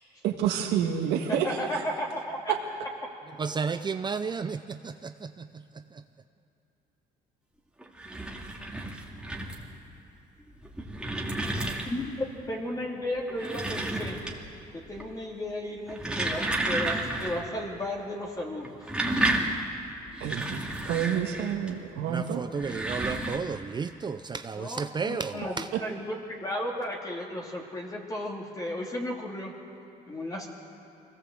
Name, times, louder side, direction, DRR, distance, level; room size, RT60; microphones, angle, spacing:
voice 1, 0.2-1.8 20.2-20.6 20.8-22.4, right 9 dB, 85° right, 1.8 m, -29 dB
voice 2, 1.3-2.5 11.9-14.2 14.7-18.9 24.5-29.5 30.1-30.5, left 1 dB, 20° left, 2.7 m, -34 dB
voice 3, 3.4-4.9 22.1-25.4, right 5 dB, 25° right, 0.6 m, -32 dB
sound 1, 7.8-9.8 10.5-12.2 13.2-14.6 14.9-15.3 15.8-17.5 17.7-17.8 18.6-21.7 22.5-23.4, right 2 dB, 5° right, 2.5 m, -32 dB
24.0 x 17.5 x 7.8 m
cardioid pair, 110°, 17 cm